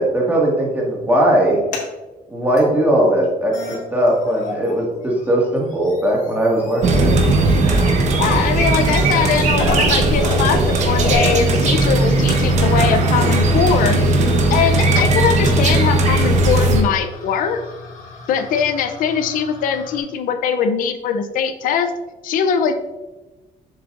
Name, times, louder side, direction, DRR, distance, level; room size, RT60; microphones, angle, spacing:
voice 1, 0.0-1.6 2.3-3.5 3.9-7.1, right 1 dB, 10° right, -3 dB, 1.9 m, -18 dB
sound 1, 1.4-1.9 2.6-2.7 3.2-3.3 3.5-4.8 5.0-20.0, left 4 dB, 65° left, 1.6 m, -34 dB
sound 2, 6.8-16.8, right 2 dB, 55° right, 1.1 m, -17 dB
voice 2, 7.7-14.0 14.5-17.6 18.3-21.9 22.2-22.7, left 7 dB, 85° left, 8 dB, 0.6 m, -21 dB
7.2 x 7.2 x 2.5 m, 1.2 s
cardioid pair, 160°, 14 cm